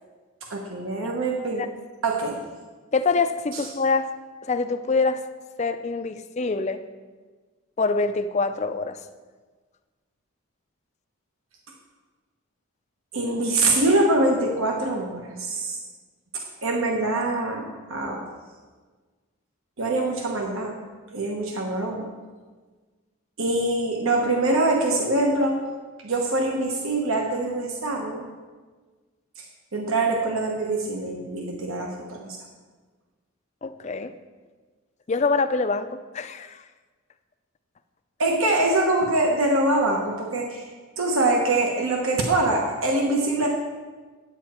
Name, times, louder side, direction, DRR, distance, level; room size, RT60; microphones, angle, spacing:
voice 1, 0.5-1.6 2.0-2.4 13.1-15.8 16.3-18.3 19.8-20.7 21.1-22.1 23.4-25.5 26.0-28.3 29.7-32.4 38.2-40.6 41.0-43.5, right 2 dB, 70° right, 1 dB, 1.1 m, -24 dB
voice 2, 2.9-4.1 4.4-5.2 5.6-6.8 7.8-9.0 33.6-34.1 35.1-35.9 36.1-36.6, left 4 dB, 30° left, 10 dB, 0.4 m, -25 dB
9.6 x 8.5 x 4.3 m, 1.4 s
head